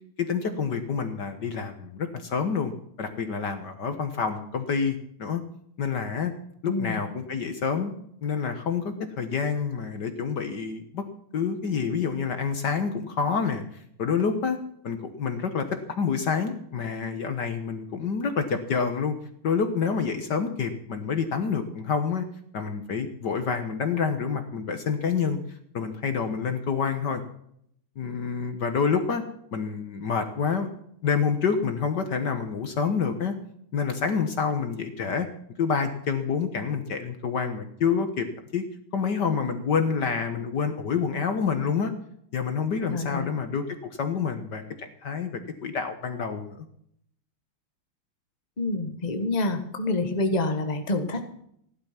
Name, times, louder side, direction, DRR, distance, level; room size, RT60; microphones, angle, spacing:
voice 1, 0.2-2.7 3.0-5.4 5.8-6.3 6.6-7.9 8.2-11.1 11.3-13.6 14.0-14.6 14.8-19.1 19.4-22.3 22.5-25.4 25.7-27.2 28.0-29.2 29.5-30.7 31.0-33.4 33.7-35.3 35.6-38.3 38.5-38.6 38.9-41.9 42.3-46.7, left 6 dB, 55° left, 8 dB, 1.8 m, -27 dB
voice 2, 6.7-7.0 42.9-43.3 48.6-51.3, left 2 dB, 20° left, 6 dB, 1.5 m, -27 dB
16.0 x 12.0 x 5.9 m, 0.70 s
omnidirectional pair, 2.4 m